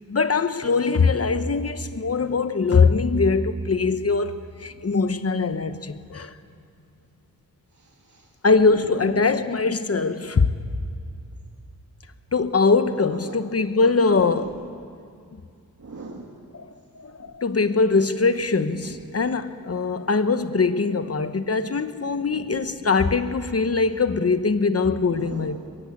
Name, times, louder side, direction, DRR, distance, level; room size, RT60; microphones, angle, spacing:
voice 1, 0.1-6.3 8.4-10.5 12.3-14.5 16.5-16.7 16.9-25.6, left 4 dB, 40° left, 11 dB, 1.0 m, -22 dB
voice 2, 7.7-8.3 8.6-9.2 13.2-13.4 14.1-14.5 15.8-16.3 17.2-17.3 18.8-19.0 20.9-21.0 22.1-22.8 25.0-25.6, right 3 dB, 55° right, -2 dB, 2.2 m, -39 dB
23.0 x 22.5 x 8.4 m, 2.3 s
wide cardioid pair, 125°, 36 cm